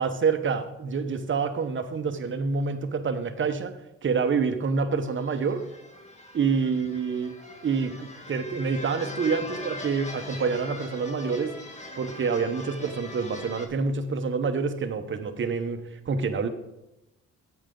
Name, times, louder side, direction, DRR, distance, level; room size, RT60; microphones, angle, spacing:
voice 1, 0.0-3.7 4.0-5.6 6.3-7.3 7.6-11.5 11.9-16.5, right 5 dB, 40° right, 9 dB, 1.0 m, -27 dB
sound 1, 5.2-13.7, left 2 dB, 25° left, 1.6 m, -41 dB
10.0 x 8.1 x 3.9 m, 0.91 s
cardioid pair, 90°, 30 cm